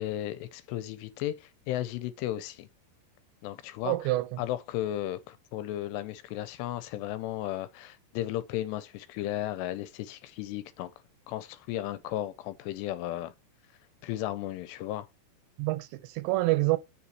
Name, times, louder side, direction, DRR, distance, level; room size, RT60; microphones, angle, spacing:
voice 1, 0.0-2.7 3.4-4.0 4.4-10.9 11.3-13.3 14.0-15.1, left 13 dB, 85° left, 2.6 m, -34 dB
voice 2, 3.8-4.4 15.6-16.8, right 19 dB, 85° right, 2.9 m, -27 dB
7.4 x 6.9 x 3.0 m
omnidirectional pair, 5.0 m